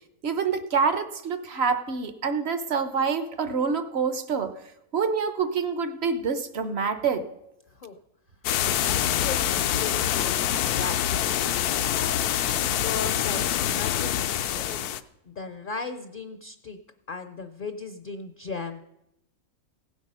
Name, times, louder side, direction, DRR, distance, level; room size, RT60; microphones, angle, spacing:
voice 1, 0.2-4.5 4.9-7.2, right 5 dB, 55° right, 10 dB, 0.9 m, -26 dB
sound 1, 8.4-15.0, left 11 dB, 85° left, 1.1 m, -25 dB
voice 2, 8.5-11.4 12.0-14.8 15.2-16.8 17.1-18.8, left 4 dB, 50° left, 9 dB, 0.6 m, -37 dB
16.5 x 8.2 x 5.5 m, 0.86 s
omnidirectional pair, 1.6 m